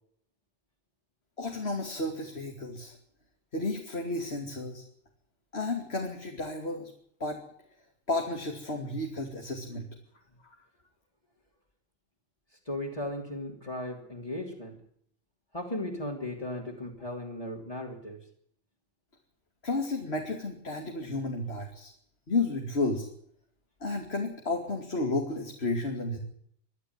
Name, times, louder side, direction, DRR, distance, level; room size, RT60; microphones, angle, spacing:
voice 1, 1.4-3.0 3.5-4.8 5.5-6.9 7.2-7.4 8.1-9.9 19.6-21.9 22.3-23.1 23.8-26.2, left 2 dB, 65° left, 2 dB, 2.9 m, -32 dB
voice 2, 12.7-14.8 15.5-18.2, left 1 dB, 30° left, -4 dB, 3.3 m, -36 dB
23.0 x 13.0 x 9.6 m, 0.68 s
omnidirectional pair, 1.2 m